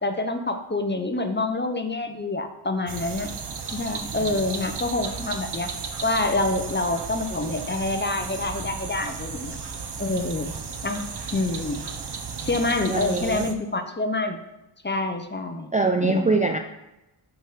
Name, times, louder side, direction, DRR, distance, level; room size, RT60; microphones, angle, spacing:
voice 1, 0.0-3.3 3.7-5.7 6.0-9.6 10.0-10.5 10.8-11.0 11.3-11.8 12.4-14.4 14.8-15.7 16.0-16.4, left 2 dB, 20° left, 6 dB, 0.6 m, -27 dB
sound 1, 2.9-13.5, right 5 dB, 55° right, 0.7 m, -34 dB
voice 2, 12.9-13.4 15.7-16.6, right 3 dB, 15° right, 4 dB, 0.3 m, -23 dB
5.3 x 3.5 x 5.6 m, 0.94 s
cardioid pair, 45°, 49 cm